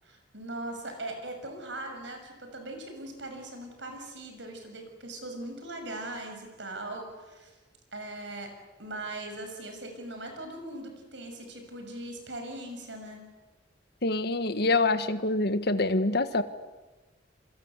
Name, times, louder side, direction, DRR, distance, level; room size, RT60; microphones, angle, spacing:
voice 1, 0.0-7.5 7.9-8.5 8.8-13.3, right 1 dB, 75° right, 5 dB, 6.5 m, -40 dB
voice 2, 14.0-16.4, left 2 dB, 60° left, 11 dB, 1.5 m, -25 dB
28.0 x 22.5 x 8.2 m, 1.2 s
head